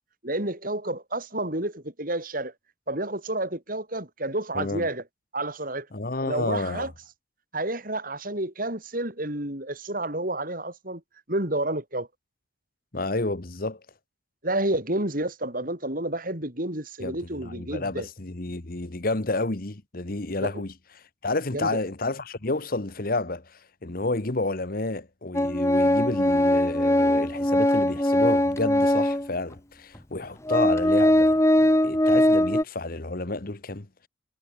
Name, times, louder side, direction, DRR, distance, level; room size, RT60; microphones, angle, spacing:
voice 1, 0.2-2.5 2.9-5.0 5.3-5.9 6.3-6.9 7.5-11.0 11.3-12.1 14.4-18.1 20.4-20.5 21.5-21.7, right 1 dB, 50° right, 6.0 m, -30 dB
voice 2, 4.5-4.9 5.9-6.9 12.9-13.8 17.0-20.7 21.2-33.9, left 2 dB, 50° left, 1.4 m, -30 dB
Organ, 25.3-29.3 29.9-30.0 30.5-32.6, left 1 dB, 15° left, 1.6 m, -21 dB
head